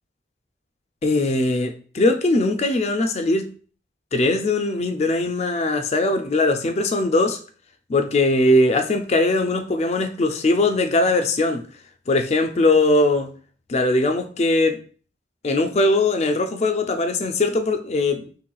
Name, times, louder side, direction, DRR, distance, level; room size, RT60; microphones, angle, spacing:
voice 1, 1.0-3.5 4.1-7.4 7.9-11.6 12.1-13.3 13.7-14.8 15.4-18.2, left 2 dB, 35° left, 7 dB, 0.4 m, -20 dB
4.5 x 3.1 x 2.3 m, 0.42 s
head